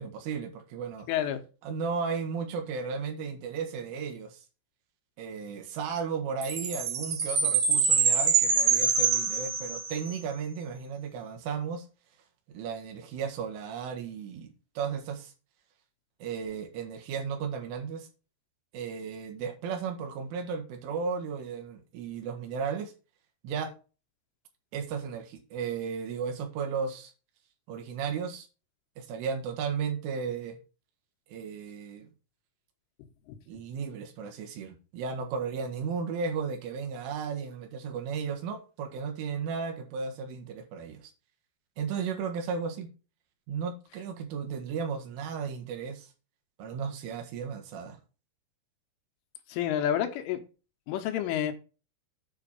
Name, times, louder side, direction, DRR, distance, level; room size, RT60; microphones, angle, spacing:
voice 1, 0.0-1.1 1.6-4.5 5.2-11.9 12.5-14.5 14.8-15.3 16.2-18.1 18.7-22.9 23.4-23.7 24.7-27.1 27.7-28.5 29.0-30.6 31.3-32.1 33.5-41.1 41.8-42.9 43.5-46.1 46.6-48.0, right 6 dB, 85° right, 4.1 m, -34 dB
voice 2, 1.1-1.4 33.3-33.4 49.5-50.4 50.9-51.5, left 10 dB, 85° left, 3.7 m, -29 dB
Chime, 6.4-10.1, right 5 dB, 45° right, 2.8 m, -25 dB
9.1 x 5.1 x 5.3 m
omnidirectional pair, 5.6 m